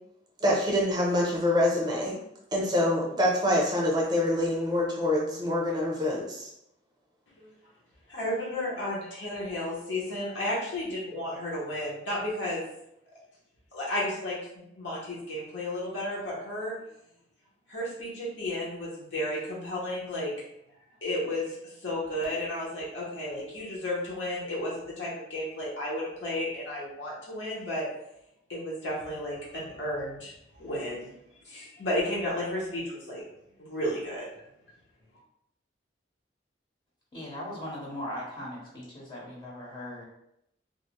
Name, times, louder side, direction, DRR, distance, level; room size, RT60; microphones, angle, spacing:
voice 1, 0.4-2.1 2.5-6.5, left 1 dB, 25° right, -3 dB, 0.6 m, -25 dB
voice 2, 8.1-12.6 13.7-16.7 17.7-20.3 21.0-21.5 21.8-27.9 28.5-30.3 30.6-31.1 31.5-33.2 33.6-34.3, left 1 dB, 85° left, -6 dB, 0.8 m, -33 dB
voice 3, 37.1-40.0, left 1 dB, 25° left, -4 dB, 0.5 m, -39 dB
2.4 x 2.0 x 2.9 m, 0.79 s
head